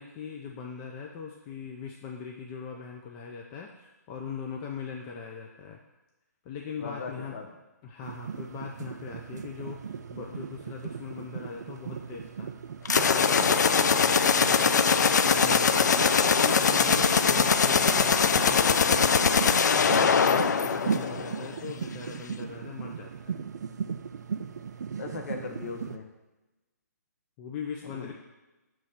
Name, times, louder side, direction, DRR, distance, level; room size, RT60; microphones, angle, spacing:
voice 1, 0.0-5.8 6.4-7.3 7.8-12.5 13.0-19.4 19.8-23.3 27.4-28.1, left 6 dB, 20° left, 0 dB, 0.4 m, -40 dB
voice 2, 6.8-7.5 25.0-26.1 27.8-28.1, left 4 dB, 55° left, 2 dB, 1.1 m, -38 dB
sound 1, 8.0-26.0, right 6 dB, 75° right, 0.4 m, -38 dB
sound 2, 12.9-21.5, left 6 dB, 80° left, 0.4 m, -22 dB
6.4 x 3.1 x 5.7 m, 1.1 s
hypercardioid pair, 160°, 9 cm